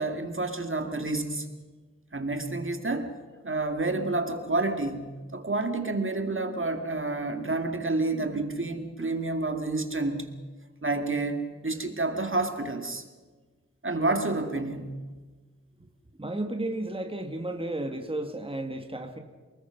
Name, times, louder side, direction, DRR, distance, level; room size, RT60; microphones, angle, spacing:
voice 1, 0.0-1.5 2.1-3.1 3.4-10.3 10.8-13.0 13.8-15.0, right 2 dB, 45° right, 6 dB, 2.2 m, -29 dB
voice 2, 16.2-19.2, right 1 dB, 20° right, 5 dB, 1.9 m, -33 dB
29.0 x 20.0 x 6.0 m, 1.4 s
wide cardioid pair, 75°, 29 cm